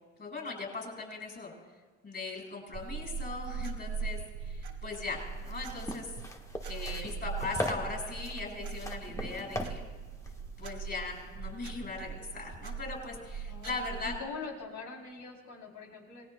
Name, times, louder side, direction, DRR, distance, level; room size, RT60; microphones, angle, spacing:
voice 1, 0.2-1.5 2.0-6.1 6.6-9.8 10.6-14.1, left 3 dB, 35° left, -1 dB, 6.3 m, -39 dB
sound 1, 2.7-14.2, right 5 dB, 70° right, 1.7 m, -40 dB
sound 2, 5.3-11.3, left 1 dB, 10° left, 1.3 m, -40 dB
voice 2, 13.5-16.3, left 4 dB, 80° left, 0 dB, 3.5 m, -43 dB
28.0 x 18.5 x 2.3 m, 1.4 s
cardioid pair, 90°, 30 cm